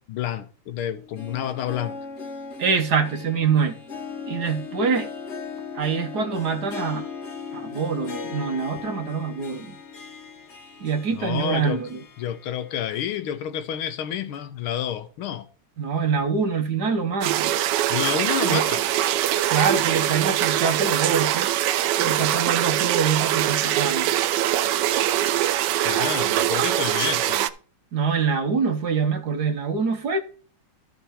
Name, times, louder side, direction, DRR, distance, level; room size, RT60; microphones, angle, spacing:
voice 1, 0.0-2.0 11.1-11.8 12.2-15.5 17.9-18.8 25.7-27.5, left 10 dB, 85° left, 1.8 m, -29 dB
Harp, 0.9-13.0 13.4-13.5 14.3-14.4, left 5 dB, 40° left, 1.2 m, -38 dB
voice 2, 2.6-3.8 4.3-5.1 5.7-7.0 7.5-9.7 10.8-12.0 15.8-17.5 18.5-18.7 19.5-21.5 22.0-24.1 27.9-30.2, right 5 dB, 55° right, 1.4 m, -25 dB
sound 1, 17.2-27.5, right 13 dB, 75° right, 1.0 m, -23 dB
13.0 x 4.5 x 4.2 m
omnidirectional pair, 2.3 m